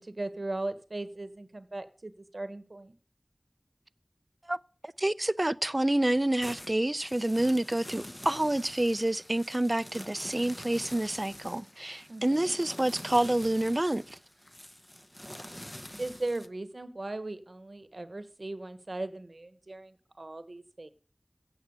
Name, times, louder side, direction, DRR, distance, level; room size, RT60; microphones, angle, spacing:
voice 1, 0.0-2.9 12.1-12.6 16.0-20.9, right 2 dB, 75° right, 1.2 m, -38 dB
voice 2, 5.0-14.2, right 1 dB, 40° right, 0.6 m, -28 dB
sound 1, 6.3-16.5, equal, 20° left, 1.0 m, -46 dB
16.0 x 5.9 x 8.0 m
wide cardioid pair, 40°, 0 cm